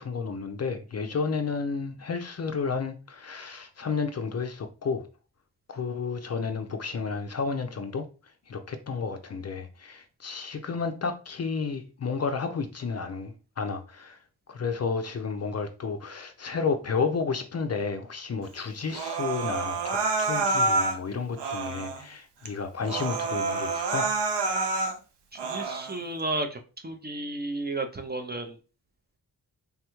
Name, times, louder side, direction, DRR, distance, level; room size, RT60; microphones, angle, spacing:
voice 1, 0.0-5.0 5.7-8.1 8.5-14.2 14.5-24.1, left 5 dB, 40° left, 0.4 m, -31 dB
Human voice, 18.9-21.0 21.4-22.0 22.5-22.6 22.8-25.0 25.4-26.0, right 3 dB, 80° right, 0.6 m, -28 dB
voice 2, 25.5-28.6, right 2 dB, 25° right, 0.4 m, -33 dB
3.4 x 2.2 x 2.9 m
cardioid pair, 65°, 41 cm